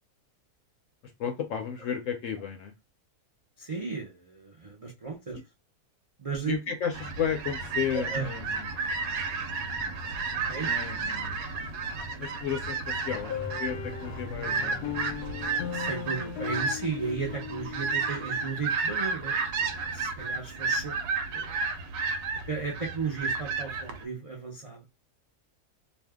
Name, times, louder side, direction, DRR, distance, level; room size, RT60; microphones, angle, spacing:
voice 1, 1.2-2.7 6.5-8.7 10.5-11.4 12.2-13.3 13.6-14.8, left 7 dB, 65° left, 0.8 m, -33 dB
voice 2, 3.6-5.4 6.2-6.6 7.9-8.3 10.4-10.7 15.7-20.9 21.3-21.6 22.4-24.8, right 4 dB, 60° right, 0.3 m, -35 dB
sound 1, 6.9-24.0, right 4 dB, 90° right, 1.2 m, -32 dB
sound 2, 13.1-18.7, left 8 dB, 90° left, 1.1 m, -38 dB
2.7 x 2.3 x 3.4 m
omnidirectional pair, 1.6 m